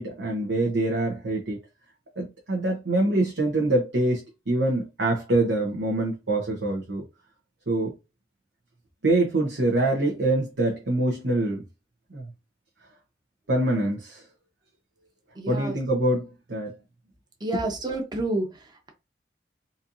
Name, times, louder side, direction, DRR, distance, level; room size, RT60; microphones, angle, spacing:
voice 1, 0.0-1.6 2.2-7.0 7.7-7.9 9.0-11.6 12.1-12.3 13.5-14.2 15.5-16.7, right 2 dB, 75° right, 0.9 m, -25 dB
voice 2, 15.3-15.8 17.4-18.9, right 2 dB, 25° right, 0.9 m, -30 dB
4.2 x 2.7 x 2.6 m
head